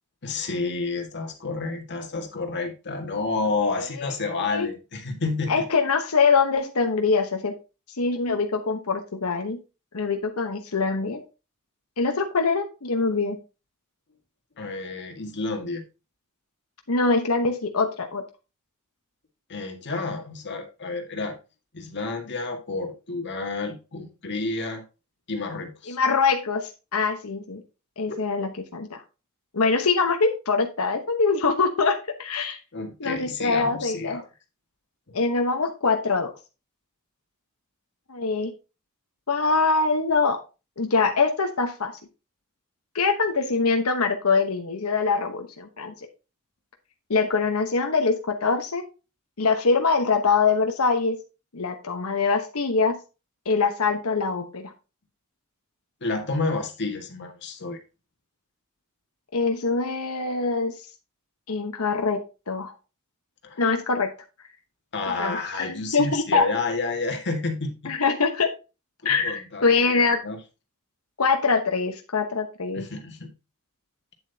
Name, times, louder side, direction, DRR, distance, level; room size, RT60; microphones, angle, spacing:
voice 1, 0.2-5.7 14.6-15.8 19.5-21.4 21.7-24.8 25.3-26.0 32.7-34.2 35.1-35.2 56.0-57.8 63.4-63.6 64.9-67.9 69.0-70.4 72.7-73.3, left 3 dB, 55° left, 4 dB, 1.9 m, -30 dB
voice 2, 4.0-4.7 5.5-7.5 8.0-9.6 9.9-11.2 12.0-13.4 16.9-18.2 25.9-27.6 28.0-29.0 29.5-32.6 33.0-34.2 35.1-36.3 38.1-38.5 39.3-40.4 40.8-41.9 42.9-45.9 47.1-48.8 49.4-51.2 51.5-53.0 53.4-54.7 59.3-60.7 61.5-62.7 63.6-64.1 65.1-66.5 67.8-68.5 69.0-70.2 71.2-72.9, left 4 dB, 75° left, 4 dB, 1.1 m, -24 dB
9.0 x 7.4 x 2.8 m, 0.29 s
head